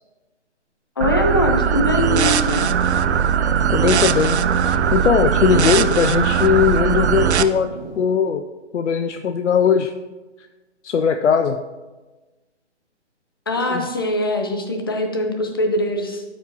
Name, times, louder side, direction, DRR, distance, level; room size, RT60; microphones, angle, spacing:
voice 1, 1.0-2.7 13.5-16.2, left 1 dB, 20° left, 4 dB, 0.4 m, -22 dB
sound 1, 1.0-7.4, right 8 dB, 70° right, 0.5 m, -19 dB
sound 2, 2.9-8.0, right 3 dB, 40° right, 1.2 m, -34 dB
voice 2, 3.7-7.7 8.0-8.4 8.7-9.9 10.8-11.6 13.6-13.9, left 7 dB, 80° left, 8 dB, 0.5 m, -19 dB
12.5 x 4.8 x 2.7 m, 1.2 s
figure-of-eight pair, 145°, 35 cm